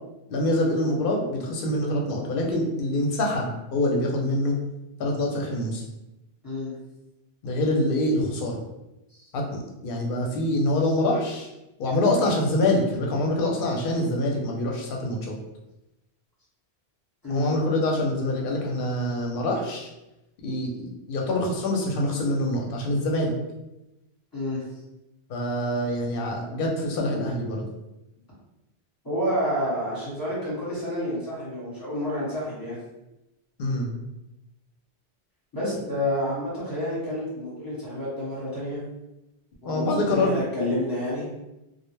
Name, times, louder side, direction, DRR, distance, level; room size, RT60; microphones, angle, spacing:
voice 1, 0.3-4.6 5.0-5.8 7.4-8.6 9.3-11.5 11.8-15.3 17.3-19.9 20.4-23.3 25.3-27.7 33.6-33.9 39.6-40.4, left 1 dB, 60° left, 0 dB, 0.7 m, -25 dB
voice 2, 6.4-6.7 9.1-9.3 11.9-12.1 17.2-17.6 24.3-24.6 29.0-32.8 35.5-38.8 39.6-41.2, left 1 dB, 20° left, -8 dB, 1.0 m, -29 dB
2.2 x 2.1 x 3.1 m, 0.95 s
omnidirectional pair, 1.1 m